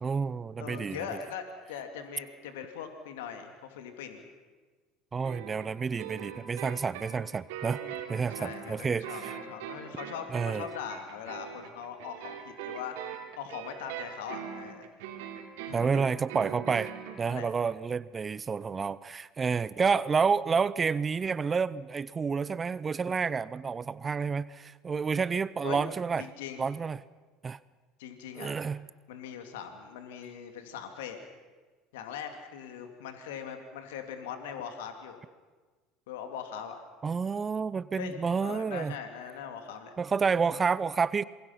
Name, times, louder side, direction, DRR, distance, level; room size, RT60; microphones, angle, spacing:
voice 1, 0.0-1.1 5.1-7.8 8.1-9.4 10.3-10.7 15.7-16.9 17.2-26.3 26.6-27.0 27.4-27.6 28.4-28.9 37.0-39.0 40.0-41.2, right 5 dB, 30° right, 19 dB, 0.6 m, -29 dB
voice 2, 0.6-4.2 7.8-12.9 13.4-14.9 15.6-15.9 17.2-17.5 25.6-25.8 26.2-26.7 28.0-28.5 29.1-31.2 31.9-35.2 36.1-36.8 38.0-38.1 38.4-39.9, left 8 dB, 75° left, 6 dB, 2.5 m, -41 dB
sound 1, 5.2-17.2, right 9 dB, 75° right, 3.4 m, -41 dB
27.0 x 22.5 x 5.9 m, 1.3 s
hypercardioid pair, 75°, 0 cm